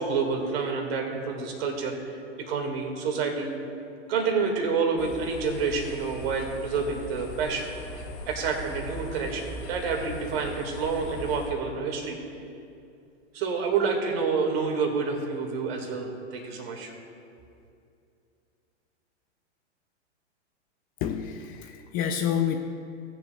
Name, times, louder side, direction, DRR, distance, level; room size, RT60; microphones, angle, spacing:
voice 1, 0.0-3.6 4.1-7.7 8.3-12.2 13.3-16.9, right 5 dB, 55° right, 2 dB, 2.0 m, -28 dB
sound 1, 5.0-11.5, left 2 dB, 55° left, 2.3 m, -40 dB
voice 2, 21.0-22.6, left 9 dB, 25° left, 5 dB, 0.4 m, -28 dB
17.5 x 7.6 x 2.3 m, 2.5 s
hypercardioid pair, 110°, 36 cm